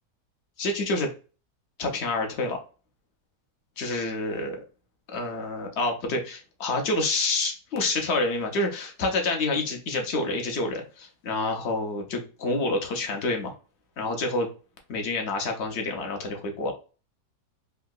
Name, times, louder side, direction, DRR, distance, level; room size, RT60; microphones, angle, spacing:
voice 1, 0.6-1.1 1.8-2.6 3.8-4.6 5.1-13.5 14.0-14.5 14.9-16.7, left 2 dB, 60° left, 3 dB, 0.7 m, -28 dB
3.5 x 2.7 x 2.3 m, 0.35 s
omnidirectional pair, 1.7 m